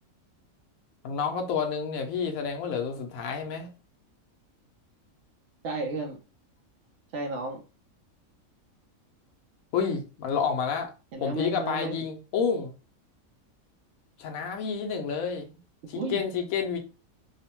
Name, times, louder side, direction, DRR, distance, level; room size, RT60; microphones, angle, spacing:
voice 1, 1.0-3.7 9.7-10.9 11.2-12.7 14.2-15.5 15.9-16.8, left 6 dB, 90° left, 1.0 m, -29 dB
voice 2, 5.6-6.2 7.1-7.6 11.1-12.0 15.9-16.2, right 3 dB, 65° right, 0.8 m, -33 dB
3.0 x 2.0 x 2.8 m
omnidirectional pair, 1.4 m